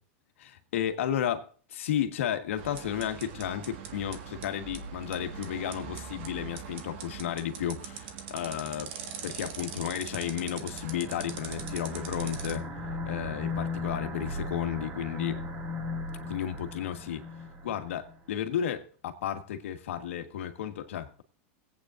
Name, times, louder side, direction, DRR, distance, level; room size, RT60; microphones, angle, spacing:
voice 1, 0.4-8.9 9.2-12.6 13.1-15.4 16.3-17.2 17.6-21.2, left 10 dB, 90° left, 1.4 m, -33 dB
sound 1, 2.6-12.5, right 7 dB, 65° right, 1.6 m, -42 dB
sound 2, 9.5-18.2, left 2 dB, 40° right, 2.0 m, -37 dB
21.5 x 8.5 x 2.5 m
supercardioid pair, 140°, 7 cm